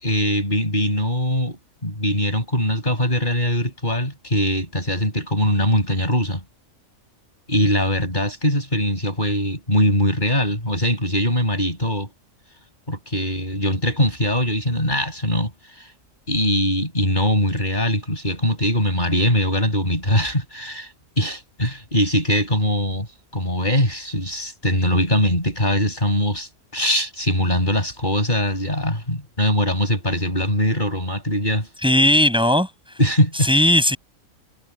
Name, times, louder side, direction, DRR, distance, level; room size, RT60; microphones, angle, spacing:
voice 1, 0.0-1.6 1.8-6.4 7.5-12.1 12.9-15.5 15.8-15.9 16.3-20.9 21.2-23.1 23.3-31.7 33.0-33.5, equal, 35° left, 7.0 m, -21 dB
voice 2, 31.8-32.7 33.4-34.0, left 1 dB, 5° right, 6.4 m, -16 dB
omnidirectional pair, 1.5 m